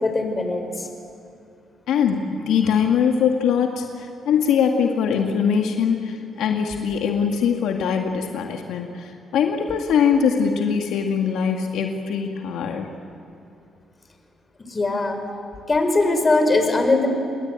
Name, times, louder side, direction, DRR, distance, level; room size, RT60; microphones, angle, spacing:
voice 1, 0.0-0.9 14.7-15.2 15.7-17.1, left 2 dB, 25° left, 5 dB, 5.3 m, -20 dB
voice 2, 1.9-12.9, left 7 dB, 85° left, 3 dB, 1.9 m, -22 dB
30.0 x 21.0 x 9.0 m, 2.5 s
cardioid pair, 90°, 0 cm